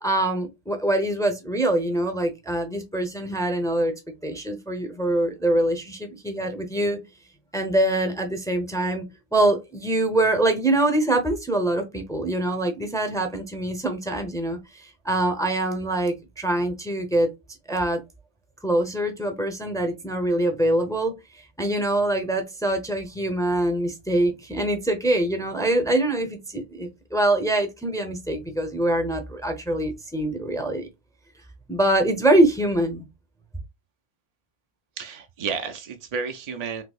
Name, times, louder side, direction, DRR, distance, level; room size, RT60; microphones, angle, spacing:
voice 1, 0.0-3.9 4.2-7.0 7.5-9.0 9.3-17.3 17.7-18.0 18.6-30.9 31.7-33.1, right 1 dB, 5° left, 0.6 m, -24 dB
voice 2, 35.0-36.8, right 5 dB, 50° right, 0.5 m, -31 dB
4.0 x 2.7 x 2.3 m
omnidirectional pair, 1.0 m